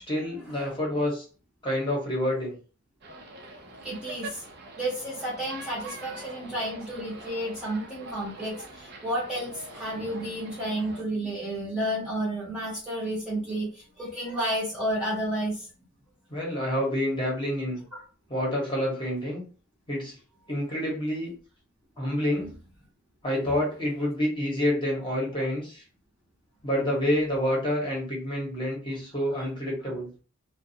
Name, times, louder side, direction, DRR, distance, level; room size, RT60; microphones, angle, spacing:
voice 1, 0.1-1.2 1.6-2.6 10.0-10.1 16.3-17.8 18.3-19.4 19.9-20.1 20.5-21.3 22.0-22.5 23.2-25.8 26.6-30.1, left 1 dB, 20° left, -3 dB, 1.0 m, -28 dB
sound 1, 3.0-11.0, right 2 dB, 45° right, 0.5 m, -44 dB
voice 2, 3.8-4.4 4.8-15.7 17.9-18.0, right 1 dB, 5° right, -7 dB, 0.7 m, -31 dB
2.5 x 2.2 x 2.7 m, 0.38 s
head